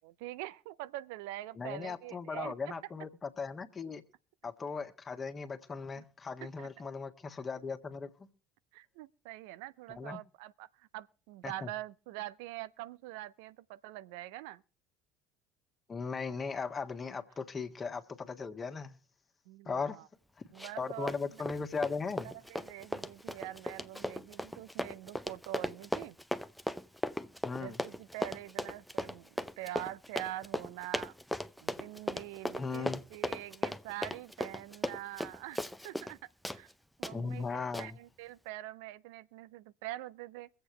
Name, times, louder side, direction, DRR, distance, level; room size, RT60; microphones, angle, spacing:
voice 1, 0.0-2.7 6.0-6.1 6.4-6.7 8.7-14.6 19.5-20.1 20.5-21.4 22.2-26.2 27.5-31.1 31.6-36.7 37.0-40.5, right 15 dB, 70° right, 0.5 m, -44 dB
voice 2, 1.6-4.0 4.4-8.3 9.9-10.2 11.4-11.7 15.9-19.0 19.6-20.0 20.4-20.5 20.8-22.3 27.4-27.8 32.6-33.0 37.1-38.0, left 5 dB, 30° left, 1.5 m, -38 dB
Run, 20.6-20.8 21.1-36.2 36.4-36.6 37.0-37.1 37.7-37.9, left 1 dB, ahead, 0.7 m, -37 dB
23.5 x 8.0 x 3.2 m
hypercardioid pair, 65°, 0 cm